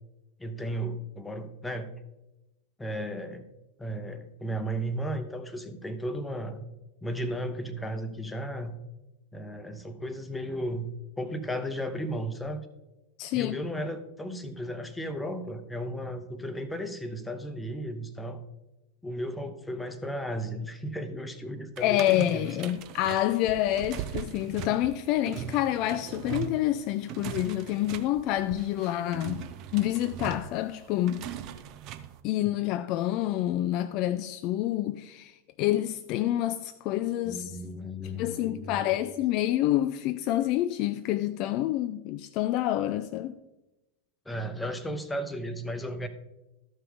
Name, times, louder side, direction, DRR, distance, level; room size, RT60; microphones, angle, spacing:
voice 1, 0.4-1.9 2.8-3.4 3.8-6.6 7.0-8.7 9.3-10.9 11.2-12.6 13.3-18.4 19.0-22.8 37.2-39.1 44.3-46.1, equal, 5° left, 0.8 m, -35 dB
voice 2, 13.2-13.6 21.8-29.4 29.7-31.2 32.2-37.6 38.2-43.3, left 14 dB, 40° left, 0.3 m, -28 dB
sound 1, 21.8-32.2, right 9 dB, 40° right, 0.6 m, -40 dB
13.5 x 5.5 x 3.7 m
figure-of-eight pair, 90°, 0 cm